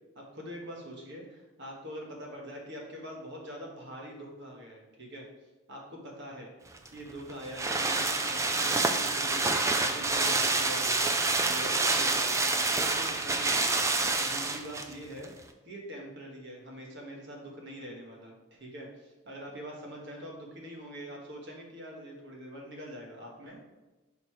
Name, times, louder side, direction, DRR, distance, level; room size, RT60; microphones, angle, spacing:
voice 1, 0.1-5.3 5.7-6.5 6.9-13.8 14.2-15.3 15.6-23.6, equal, 55° right, -1 dB, 1.4 m, -44 dB
sound 1, 6.8-14.9 15.2-15.3, right 3 dB, 15° right, 0.4 m, -27 dB
6.4 x 4.0 x 4.5 m, 1.1 s
head